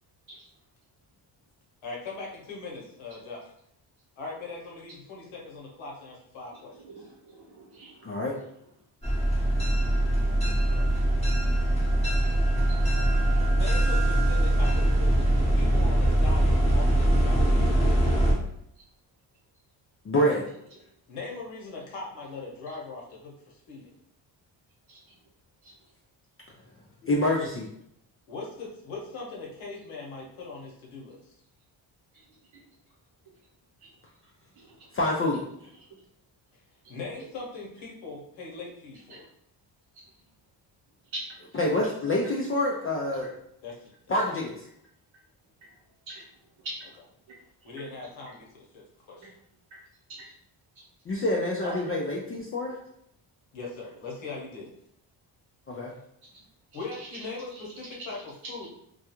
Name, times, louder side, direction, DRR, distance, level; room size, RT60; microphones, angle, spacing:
voice 1, 1.8-3.5 4.2-7.0 10.6-10.9 13.5-17.8 21.1-23.9 28.3-31.3 36.5-36.6 36.9-39.2 43.6-43.9 47.6-49.3 51.6-52.0 53.5-54.7 56.7-58.7, left 3 dB, 80° left, -2 dB, 1.0 m, -40 dB
voice 2, 6.8-7.9 24.9-25.0 25.6-25.7 41.1-41.2 46.1-46.2 46.6-46.7 50.1-50.2, right 1 dB, 75° right, -6 dB, 1.0 m, -40 dB
voice 3, 8.0-8.3 20.1-20.4 27.0-27.7 34.9-35.4 41.5-43.3 44.1-44.5 51.1-52.7 55.7-55.9, left 1 dB, 30° left, -2 dB, 0.4 m, -26 dB
sound 1, 9.0-18.3, right 1 dB, 15° left, 1.0 m, -22 dB
2.3 x 2.3 x 2.9 m, 0.73 s
cardioid pair, 70°, 47 cm